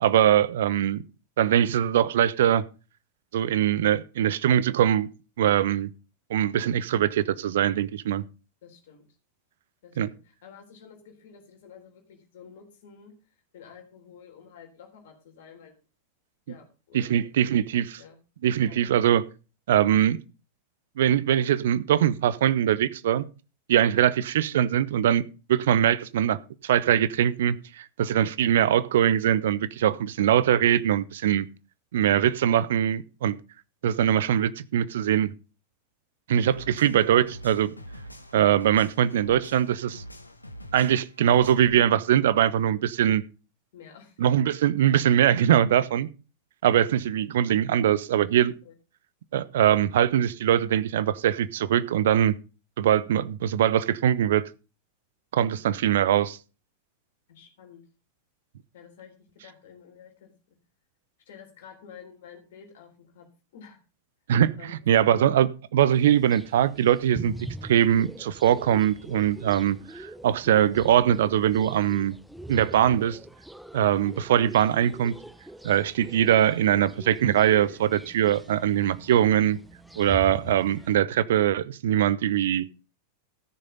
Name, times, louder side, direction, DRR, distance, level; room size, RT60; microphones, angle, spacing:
voice 1, 0.0-1.0 1.4-2.6 3.3-5.1 5.4-5.9 6.3-8.2 10.0-10.1 16.9-18.0 18.4-19.2 19.7-20.2 21.0-23.2 23.7-25.2 25.5-31.4 31.9-33.4 33.8-35.3 36.3-37.7 38.3-40.0 40.7-43.2 44.2-46.1 46.6-48.5 49.3-52.3 52.8-54.4 55.3-56.4 64.3-67.3 67.6-72.1 72.5-73.2 73.7-75.1 75.6-79.6 80.0-82.7, right 10 dB, 60° right, 0.7 m, -22 dB
voice 2, 8.6-9.0 9.8-13.1 13.5-15.7 16.5-17.5 18.0-18.2 18.7-18.8 23.9-24.0 43.7-44.2 48.6-48.7 57.3-57.8 58.7-60.6 61.2-63.3 63.5-63.8 64.6-65.0, left 7 dB, 55° left, 3.6 m, -50 dB
sound 1, 36.4-41.8, equal, 85° left, 1.1 m, -44 dB
sound 2, 65.9-81.0, right 2 dB, ahead, 0.7 m, -43 dB
14.0 x 6.6 x 5.4 m
figure-of-eight pair, 90°, 0 cm